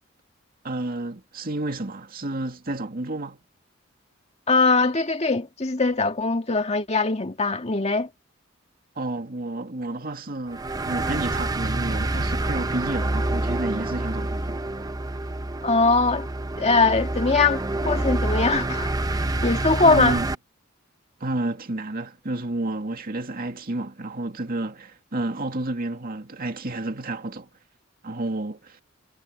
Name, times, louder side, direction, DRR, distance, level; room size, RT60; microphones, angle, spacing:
voice 1, 0.6-3.4 9.0-14.6 19.8-20.3 21.2-27.5 28.0-28.8, right 2 dB, 50° right, 2.3 m, -30 dB
voice 2, 4.5-8.1 15.6-16.3 16.6-18.9 19.4-20.2, left 3 dB, 35° left, 2.0 m, -21 dB
sound 1, 10.5-20.3, right 2 dB, 20° right, 0.8 m, -27 dB
head